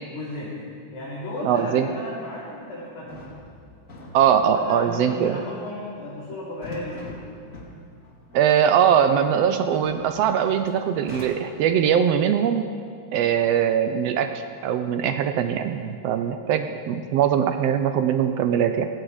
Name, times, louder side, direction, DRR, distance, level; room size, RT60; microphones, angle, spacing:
voice 1, 0.1-0.5 0.9-3.2 4.5-7.2, left 1 dB, 75° left, -10 dB, 4.7 m, -34 dB
voice 2, 1.4-1.9 4.1-5.4 8.3-12.7 13.1-14.3 14.6-18.9, right 8 dB, 80° right, 8 dB, 1.5 m, -21 dB
sound 1, 2.3-2.4 2.8-2.9 3.1-11.3, left 1 dB, 30° left, 1.9 m, -44 dB
17.0 x 16.0 x 4.9 m, 2.2 s
omnidirectional pair, 3.5 m